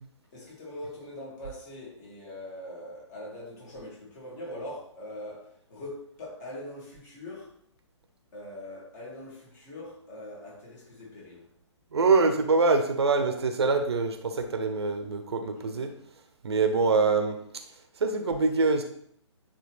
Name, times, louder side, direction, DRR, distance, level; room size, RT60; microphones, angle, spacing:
voice 1, 0.3-7.5 8.3-11.5 15.5-16.1, left 1 dB, 35° left, -3 dB, 2.4 m, -42 dB
voice 2, 11.9-15.9 16.4-17.4 18.0-18.8, right 4 dB, 60° right, 6 dB, 0.9 m, -24 dB
9.5 x 3.2 x 3.3 m, 0.68 s
figure-of-eight pair, 130°, 15 cm